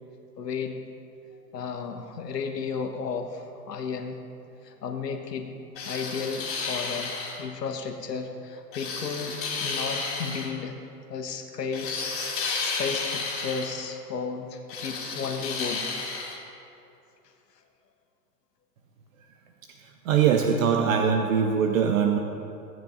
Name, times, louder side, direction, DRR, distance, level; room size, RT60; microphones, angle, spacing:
voice 1, 0.4-0.8 1.5-4.2 4.6-5.5 5.8-10.7 11.1-15.9, left 5 dB, 80° left, 5 dB, 1.3 m, -33 dB
sound 1, 5.8-7.4 8.7-10.5 11.7-13.7 14.7-16.4, left 4 dB, 25° left, 2.5 m, -32 dB
voice 2, 20.1-22.2, right 7 dB, 55° right, 4 dB, 0.9 m, -22 dB
17.0 x 9.3 x 2.6 m, 2.7 s
hypercardioid pair, 115°, 48 cm